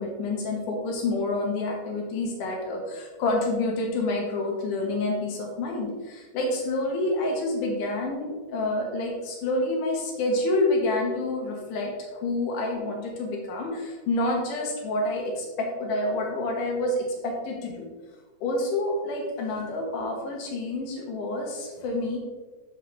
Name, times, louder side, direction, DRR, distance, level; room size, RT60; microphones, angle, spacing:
voice 1, 0.0-17.9 18.4-22.2, left 2 dB, 85° left, 0 dB, 2.9 m, -28 dB
6.9 x 6.4 x 3.3 m, 1.3 s
omnidirectional pair, 3.5 m